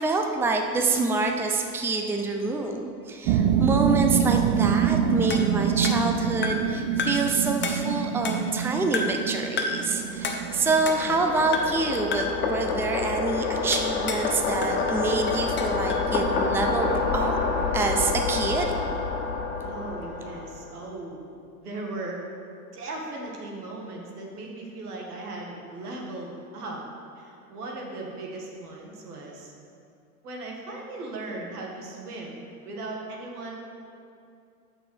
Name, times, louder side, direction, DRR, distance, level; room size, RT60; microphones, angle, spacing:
voice 1, 0.0-17.3 17.7-18.7, right 3 dB, 5° right, 3 dB, 0.5 m, -27 dB
sound 1, 3.3-12.2, right 8 dB, 55° right, 0.7 m, -25 dB
sound 2, 5.3-6.7 7.0-7.3 7.6-8.6 8.9-9.3 9.6-9.9 10.2-11.2 11.5-11.9 12.1-12.4 13.7-14.3 14.6-16.1, left 4 dB, 25° left, 0.9 m, -32 dB
sound 3, 10.0-20.7, left 4 dB, 75° left, 1.5 m, -28 dB
voice 2, 19.6-21.2 21.6-22.3 22.7-26.9 27.2-29.5 30.2-33.6, right 2 dB, 85° right, -1 dB, 1.8 m, -37 dB
6.6 x 6.2 x 6.3 m, 2.5 s
hypercardioid pair, 95°, 44 cm